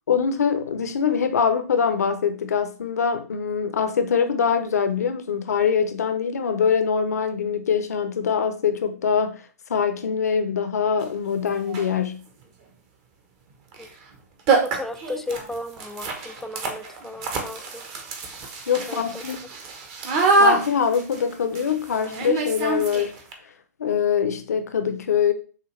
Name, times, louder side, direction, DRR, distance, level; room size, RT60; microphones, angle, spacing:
voice 1, 0.1-12.3 18.7-19.4 20.4-23.1 23.8-25.3, left 7 dB, 70° left, 0.7 m, -23 dB
sound 1, 11.0-11.1 11.6-12.0 13.7-13.9 14.1-14.2 14.5-23.3, right 3 dB, 35° right, 1.0 m, -25 dB
voice 2, 14.6-17.8 18.9-19.2, left 2 dB, 5° left, 0.3 m, -35 dB
6.5 x 2.5 x 3.1 m
figure-of-eight pair, 115°, 9 cm